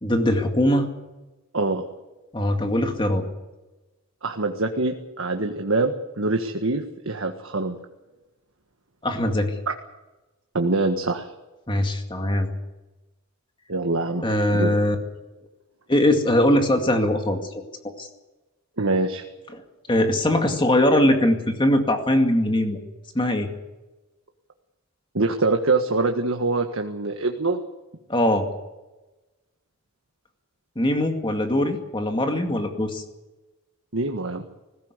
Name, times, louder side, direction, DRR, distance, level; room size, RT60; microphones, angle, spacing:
voice 1, 0.0-0.9 2.3-3.2 9.0-9.5 11.7-12.5 14.2-15.0 15.9-17.6 18.0-18.1 19.5-19.6 19.9-22.8 23.1-23.5 28.1-28.5 30.8-33.0, left 1 dB, 25° left, 5 dB, 2.2 m, -21 dB
voice 2, 1.5-1.8 4.2-7.8 9.7-9.8 10.5-11.3 13.7-14.8 18.8-19.2 25.1-27.6 33.9-34.4, right 3 dB, 70° right, 4 dB, 1.6 m, -24 dB
20.0 x 16.5 x 8.3 m, 1.1 s
head